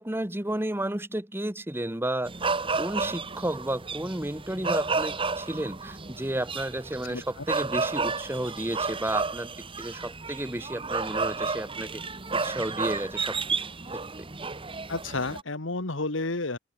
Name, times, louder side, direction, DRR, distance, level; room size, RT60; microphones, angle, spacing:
voice 1, 0.0-2.3 2.7-9.5 9.8-12.0 12.3-13.4, right 1 dB, 10° right, 1.4 m, -32 dB
sound 1, 2.3-15.4, right 4 dB, 25° right, 1.9 m, -32 dB
voice 2, 14.9-16.6, left 3 dB, 75° left, 1.8 m, -30 dB
head